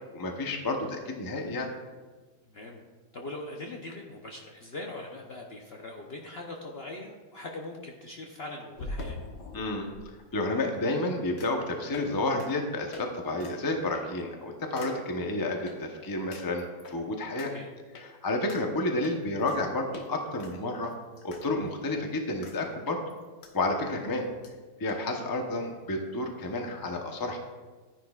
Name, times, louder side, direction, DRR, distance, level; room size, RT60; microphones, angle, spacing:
voice 1, 0.1-1.7 9.5-9.9 10.3-17.5 18.2-20.9 21.2-23.0 23.5-24.3 24.8-27.4, left 2 dB, 20° left, 3 dB, 0.6 m, -30 dB
voice 2, 2.4-2.8 3.1-9.2 17.4-17.7, left 2 dB, 50° left, 0 dB, 0.8 m, -41 dB
sound 1, 8.8-10.1 11.4-11.6 11.9-12.1 12.4-12.5 12.9-13.1 13.4-13.5 13.9-14.2 14.8-14.9 15.7-15.8 16.3-17.0 17.4-17.5 17.9-18.1 18.5-18.6 19.0-19.6 19.9-20.1 20.4-21.4 21.7-21.8 22.4-22.6 22.9-23.5 23.8-23.9 24.1-24.2 24.4-24.5 24.9-25.0, left 2 dB, 85° left, 1.7 m, -43 dB
12.0 x 10.0 x 2.4 m, 1.3 s
omnidirectional pair, 1.8 m